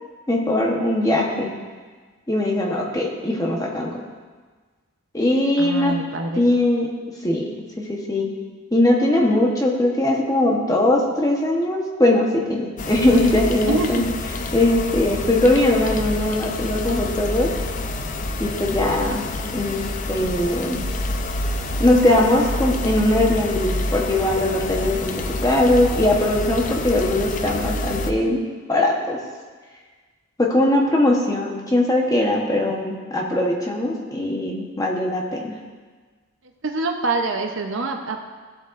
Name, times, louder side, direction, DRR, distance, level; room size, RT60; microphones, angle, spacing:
voice 1, 0.3-1.5 2.3-3.9 5.1-6.0 6.4-6.9 7.2-7.5 7.8-8.3 8.7-14.0 14.5-17.5 18.4-19.2 19.5-19.8 20.1-20.8 21.8-28.4 28.7-29.2 30.4-35.5, left 1 dB, 15° left, -1 dB, 1.0 m, -20 dB
voice 2, 5.6-6.4 13.7-14.0 36.6-38.2, right 3 dB, 60° right, 4 dB, 0.7 m, -25 dB
sound 1, 12.8-28.1, left 2 dB, 35° left, 0.5 m, -28 dB
15.0 x 7.7 x 2.5 m, 1.5 s
head